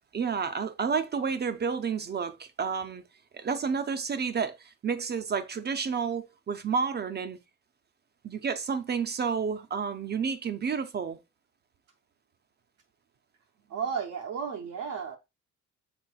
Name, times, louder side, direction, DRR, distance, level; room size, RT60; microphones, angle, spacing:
voice 1, 0.1-3.0 3.3-7.4 8.2-11.2, right 6 dB, 35° right, 0.5 m, -30 dB
voice 2, 13.7-15.2, right 6 dB, 75° right, 0.6 m, -33 dB
6.0 x 3.6 x 2.3 m
cardioid pair, 90°, 30 cm